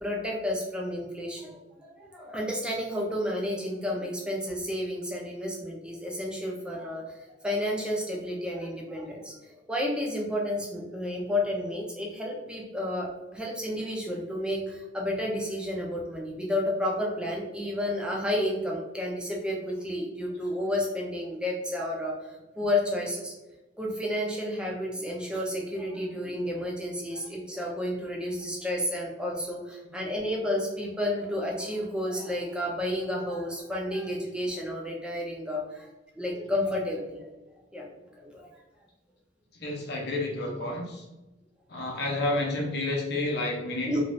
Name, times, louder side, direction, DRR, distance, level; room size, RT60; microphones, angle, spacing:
voice 1, 0.0-7.0 7.4-22.1 22.6-23.3 23.8-35.9 36.2-37.3 37.7-37.8 38.2-38.5 43.9-44.0, left 1 dB, 5° right, -3 dB, 0.5 m, -31 dB
voice 2, 39.6-41.0 41.7-44.0, left 2 dB, 60° left, 0 dB, 0.7 m, -30 dB
2.6 x 2.4 x 3.1 m, 1.0 s
head